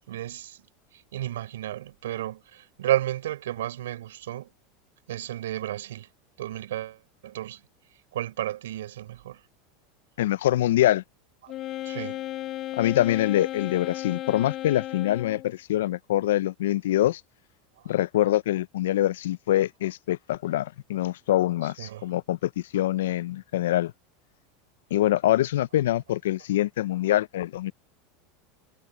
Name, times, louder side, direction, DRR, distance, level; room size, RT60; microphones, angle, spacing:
voice 1, 0.1-0.6 0.9-4.5 5.1-6.1 6.4-7.6 8.1-9.4 11.4-11.5 11.8-12.2 21.8-22.1, right 13 dB, 85° right, 4.5 m, -32 dB
voice 2, 10.2-11.0 12.8-17.2 17.9-23.9 24.9-27.7, left 14 dB, 85° left, 0.5 m, -24 dB
Wind instrument woodwind instrument, 11.5-15.5, left 14 dB, 45° left, 0.9 m, -35 dB
supercardioid pair, 115°, 0 cm